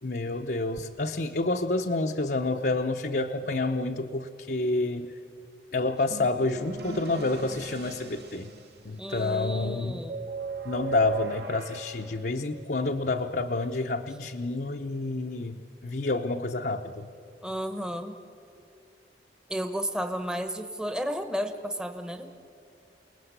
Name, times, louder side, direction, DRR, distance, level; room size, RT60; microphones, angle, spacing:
voice 1, 0.0-5.1 5.7-8.5 8.8-10.1 10.6-17.1, left 2 dB, 55° left, 3 dB, 0.8 m, -29 dB
sound 1, 6.1-9.2 10.1-12.9, right 4 dB, 70° right, 3.0 m, -37 dB
voice 2, 9.0-10.2 17.4-18.2 19.5-22.3, equal, 5° right, 8 dB, 1.1 m, -32 dB
28.5 x 19.5 x 8.2 m, 2.8 s
head